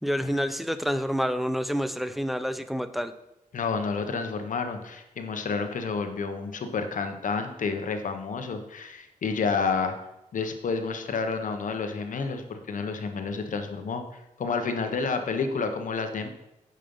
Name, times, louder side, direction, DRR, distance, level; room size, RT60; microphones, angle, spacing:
voice 1, 0.0-3.1, equal, ahead, 11 dB, 0.6 m, -28 dB
voice 2, 3.5-9.9 10.3-14.0 14.4-16.3, left 4 dB, 70° left, 6 dB, 1.1 m, -30 dB
8.8 x 5.5 x 5.5 m, 0.88 s
cardioid pair, 85°, 14 cm